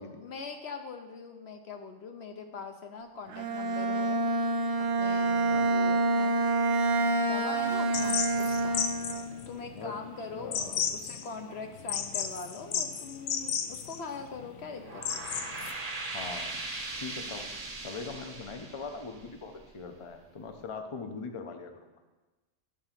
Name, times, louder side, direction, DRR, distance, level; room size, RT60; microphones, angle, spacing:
voice 1, 0.0-4.3 4.8-6.4 7.3-8.8 9.5-15.2, left 4 dB, 60° left, 4 dB, 0.9 m, -42 dB
Bowed string instrument, 3.3-9.4, right 2 dB, 65° right, 0.9 m, -27 dB
sound 1, 7.9-15.7, left 7 dB, 85° left, 1.1 m, -34 dB
voice 2, 10.3-10.8 16.1-16.6 17.0-17.5 17.8-21.9, left 4 dB, 30° left, 5 dB, 0.6 m, -41 dB
sound 2, 14.7-19.9, right 2 dB, 35° right, 0.9 m, -39 dB
11.0 x 3.9 x 7.3 m, 1.2 s
omnidirectional pair, 1.4 m